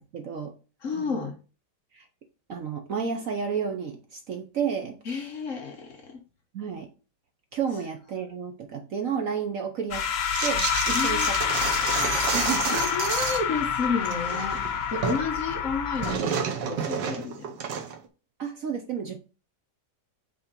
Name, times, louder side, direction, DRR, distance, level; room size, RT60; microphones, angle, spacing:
voice 1, 0.1-0.5 0.9-1.3 1.9-2.0 2.5-5.0 6.5-6.9 7.5-10.1 10.4-11.4 11.6-12.8 18.4-19.2, right 6 dB, 60° right, 1.0 m, -31 dB
voice 2, 0.8-1.4 5.0-6.2 10.9-11.3 12.7-14.6 14.9-17.6, left 4 dB, 50° left, 1.3 m, -31 dB
sound 1, 9.9-16.2, left 7 dB, 70° left, 1.5 m, -27 dB
sound 2, 10.3-13.5 13.8-15.2 15.5-18.1, right 6 dB, 75° right, 1.7 m, -30 dB
5.8 x 4.2 x 5.2 m
omnidirectional pair, 1.9 m